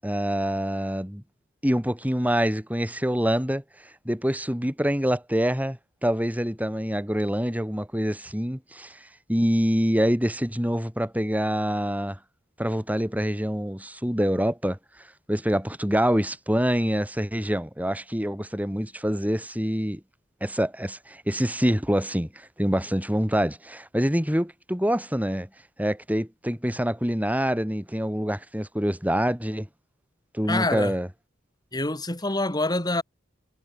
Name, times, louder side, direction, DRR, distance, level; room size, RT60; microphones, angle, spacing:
voice 1, 0.0-1.2 1.6-3.6 4.1-9.0 9.3-12.2 12.6-14.8 15.3-20.0 20.4-25.5 25.8-29.7 30.3-31.1, equal, 10° right, 7.0 m, -25 dB
voice 2, 30.5-30.9 31.7-33.0, left 2 dB, 20° left, 4.0 m, -26 dB
head